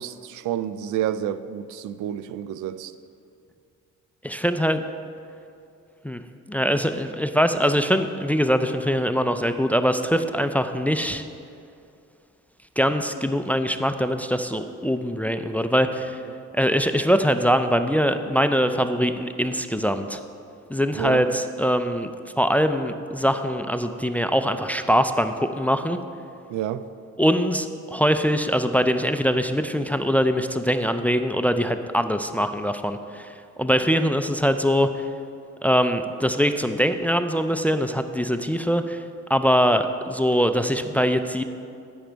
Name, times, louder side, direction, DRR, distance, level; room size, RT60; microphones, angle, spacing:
voice 1, 0.0-2.9 20.9-21.3 26.5-26.8, right 11 dB, 75° right, 14 dB, 0.5 m, -29 dB
voice 2, 4.2-4.8 6.0-6.2 6.5-11.2 12.8-16.2 16.5-20.2 20.7-26.0 27.2-35.1 35.6-39.0 39.3-41.4, equal, 5° left, 9 dB, 0.4 m, -22 dB
10.5 x 7.3 x 4.5 m, 2.4 s
cardioid pair, 90°, 30 cm